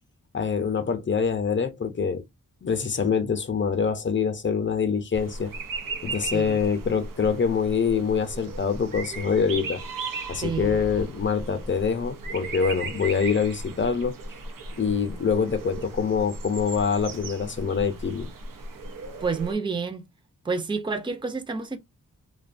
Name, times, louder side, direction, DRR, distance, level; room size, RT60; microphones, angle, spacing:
voice 1, 0.3-2.2 2.6-5.5 6.0-9.8 10.3-14.2 14.8-18.3, left 6 dB, 35° left, 0.6 m, -25 dB
sound 1, 5.1-19.5, right 3 dB, 85° right, 0.6 m, -36 dB
voice 2, 10.4-10.8 19.2-20.1 20.4-21.8, right 4 dB, 15° right, 0.6 m, -29 dB
2.6 x 2.2 x 2.5 m
cardioid pair, 65°, 32 cm